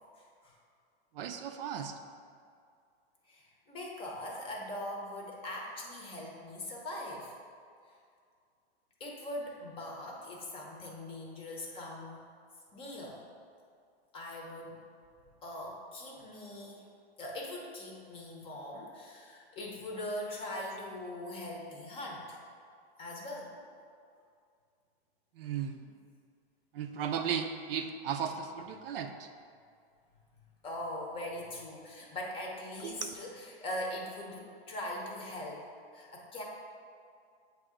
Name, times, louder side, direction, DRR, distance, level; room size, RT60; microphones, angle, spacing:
voice 1, 1.1-1.9 20.5-20.6 25.4-25.8 26.7-29.3 32.8-33.1, right 7 dB, 65° right, 6 dB, 0.6 m, -36 dB
voice 2, 3.3-7.3 9.0-12.2 12.7-13.2 14.1-14.9 15.4-16.9 17.2-22.4 23.0-23.7 25.4-25.5 30.6-36.4, left 1 dB, 15° left, -2 dB, 0.7 m, -41 dB
7.9 x 2.8 x 4.9 m, 2.3 s
supercardioid pair, 155°, 32 cm